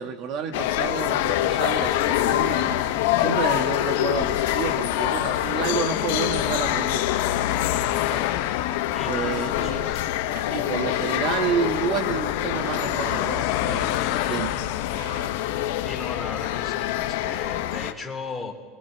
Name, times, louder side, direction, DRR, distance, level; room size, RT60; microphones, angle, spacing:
voice 1, 0.0-7.1 9.1-9.8 10.5-13.9 14.2-14.6, right 7 dB, 45° right, 7 dB, 1.7 m, -30 dB
sound 1, 0.5-17.9, left 13 dB, 75° left, 1.3 m, -25 dB
sound 2, 1.3-16.2, left 12 dB, 55° left, 1.3 m, -33 dB
sound 3, 2.7-2.9 3.4-3.5 3.8-4.8 6.1-6.9 7.3-7.5 7.9-8.4 9.0-9.3 10.2-10.6 11.4-11.8 12.4-12.8 13.6-15.3, right 6 dB, 85° right, 2.0 m, -45 dB
voice 2, 8.9-10.1 15.8-18.5, left 4 dB, 5° left, -2 dB, 3.1 m, -37 dB
29.0 x 21.0 x 4.7 m, 1.4 s
supercardioid pair, 150°, 0 cm